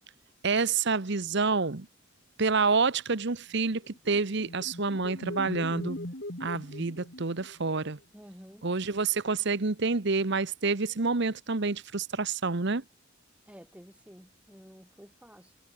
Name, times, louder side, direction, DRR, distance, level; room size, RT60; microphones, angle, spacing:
voice 1, 0.4-1.9 2.4-6.0 6.4-8.0 8.6-12.8, right 4 dB, 55° right, 1.1 m, -28 dB
sound 1, 3.8-7.9, left 1 dB, 50° left, 4.4 m, -40 dB
voice 2, 8.1-8.6 13.5-15.6, equal, 5° right, 5.5 m, -51 dB
head